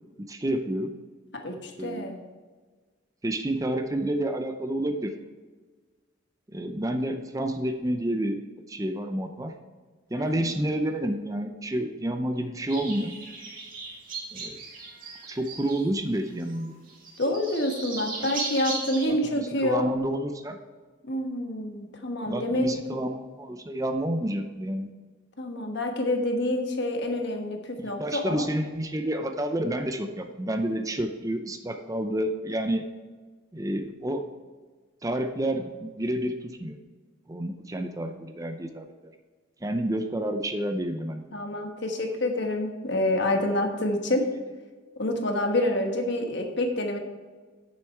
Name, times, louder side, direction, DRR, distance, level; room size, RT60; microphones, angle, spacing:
voice 1, 0.3-0.9 1.8-2.1 3.2-5.1 6.5-8.4 8.7-9.5 10.1-13.2 14.3-14.6 15.3-16.7 18.2-18.3 19.0-20.6 22.3-24.9 28.0-32.8 33.5-34.2 35.0-36.8 37.3-39.1 39.6-41.2, right 1 dB, 15° right, 6 dB, 0.5 m, -29 dB
voice 2, 1.4-2.2 10.1-10.6 17.2-19.9 21.1-22.7 25.4-28.5 41.3-44.3 45.0-47.0, left 1 dB, 55° left, 3 dB, 1.3 m, -27 dB
sound 1, 12.7-16.1 16.4-19.1, right 3 dB, 40° right, 2.3 m, -37 dB
9.4 x 7.1 x 4.5 m, 1.4 s
head